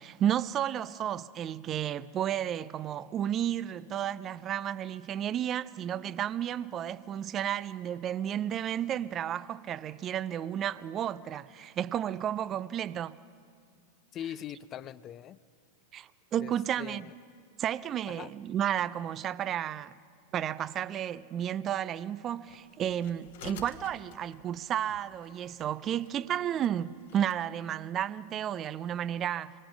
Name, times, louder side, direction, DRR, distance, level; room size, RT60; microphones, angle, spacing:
voice 1, 0.0-13.2 15.9-17.1 17.6-20.0 20.3-29.5, right 10 dB, 30° right, 0.5 m, -32 dB
voice 2, 14.1-15.4 16.4-16.5 16.8-17.1 18.1-18.3 23.4-23.6, left 10 dB, 30° left, 0.5 m, -41 dB
sound 1, 22.5-27.4, left 6 dB, 55° left, 1.5 m, -52 dB
26.0 x 22.0 x 6.0 m
figure-of-eight pair, 90°, 0 cm